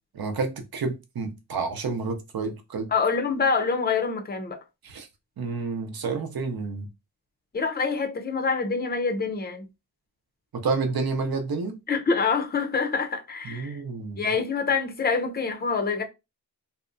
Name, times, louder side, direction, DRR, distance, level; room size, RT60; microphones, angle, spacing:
voice 1, 0.1-2.9 4.8-5.1 5.4-6.9 10.5-11.8 13.4-14.2, right 4 dB, 55° right, 0.7 m, -29 dB
voice 2, 2.9-4.6 7.5-9.7 11.9-13.8 14.2-16.0, left 5 dB, 25° left, 0.6 m, -26 dB
2.7 x 2.2 x 2.5 m
cardioid pair, 40°, 42 cm